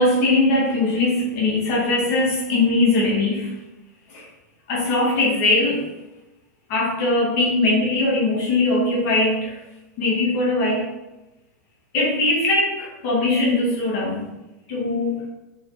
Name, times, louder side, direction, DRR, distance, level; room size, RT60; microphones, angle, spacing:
voice 1, 0.0-3.5 4.1-4.3 4.7-5.9 6.7-9.6 10.0-10.9 11.9-14.3 14.7-15.2, left 2 dB, 50° left, -4 dB, 1.9 m, -20 dB
5.1 x 4.5 x 4.2 m, 1.0 s
hypercardioid pair, 135°, 10 cm